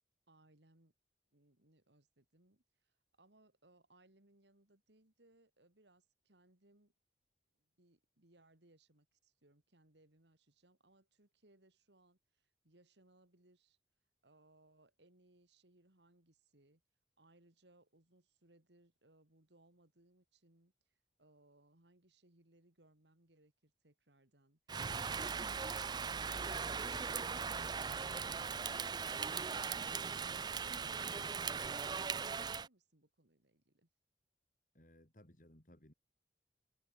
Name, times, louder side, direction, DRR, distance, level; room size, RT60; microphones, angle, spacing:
voice 1, 0.3-0.9 1.3-6.9 7.6-13.8 14.2-16.8 17.2-24.6, right 1 dB, 80° right, 3.2 m, -69 dB
Rain, 24.7-32.7, right 5 dB, 25° right, 0.4 m, -39 dB
voice 2, 34.7-35.9, left 1 dB, 45° left, 3.4 m, -62 dB
head